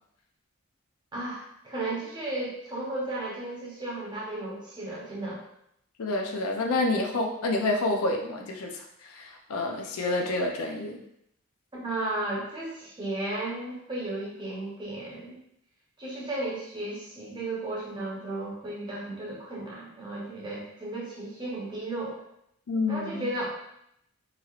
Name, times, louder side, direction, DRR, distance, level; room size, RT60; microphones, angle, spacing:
voice 1, 1.1-5.4 11.7-15.4 16.0-22.2 22.9-23.4, right 2 dB, 20° right, -6 dB, 0.8 m, -34 dB
voice 2, 6.0-11.0 22.7-23.3, left 2 dB, 80° left, 2 dB, 0.5 m, -28 dB
3.0 x 2.9 x 2.4 m, 0.76 s
head